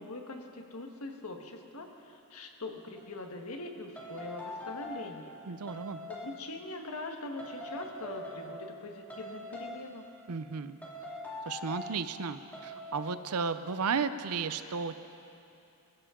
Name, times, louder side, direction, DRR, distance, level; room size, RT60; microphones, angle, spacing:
voice 1, 0.0-5.3 6.0-10.1, left 2 dB, 75° left, 3 dB, 1.5 m, -42 dB
sound 1, 3.0-3.1 4.0-5.2 5.7-6.4 7.4-8.8 9.1-10.0 10.8-12.0 12.5-13.1, left 1 dB, 5° left, 2.2 m, -43 dB
voice 2, 5.5-6.0 10.3-10.8 11.5-14.9, right 5 dB, 80° right, 11 dB, 0.6 m, -34 dB
24.5 x 14.5 x 3.8 m, 2.8 s
head